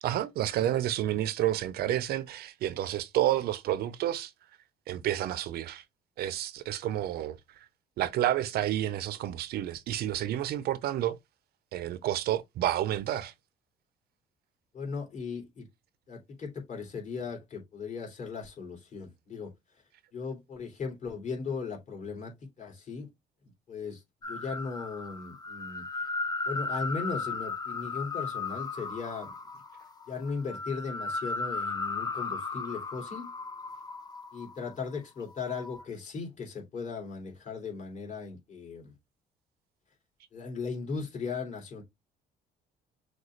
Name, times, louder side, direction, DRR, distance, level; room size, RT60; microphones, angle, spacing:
voice 1, 0.0-4.3 4.9-5.8 6.2-7.7 8.0-11.2 11.7-13.3, right 12 dB, 70° right, 0.6 m, -30 dB
voice 2, 14.7-15.7 16.1-19.5 20.1-23.1 23.7-26.1 26.5-29.3 30.1-33.3 34.3-38.9 40.3-41.8, left 5 dB, 45° left, 2.8 m, -37 dB
sound 1, 24.2-34.8 35.3-35.8, left 3 dB, 25° left, 0.8 m, -36 dB
6.3 x 2.4 x 3.1 m
cardioid pair, 110°, 17 cm